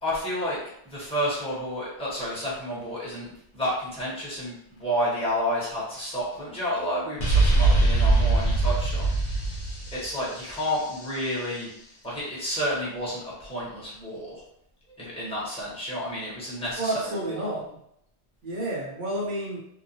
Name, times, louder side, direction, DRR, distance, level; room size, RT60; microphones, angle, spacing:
voice 1, 0.0-9.1 9.4-9.5 9.9-11.7 12.0-14.4 15.0-17.5, equal, 5° left, -8 dB, 0.9 m, -30 dB
sound 1, 7.2-11.0, right 2 dB, 45° left, 0.6 m, -22 dB
voice 2, 16.8-17.7 18.4-19.6, right 1 dB, 50° right, -4 dB, 0.9 m, -30 dB
2.9 x 2.1 x 2.6 m, 0.73 s
omnidirectional pair, 1.1 m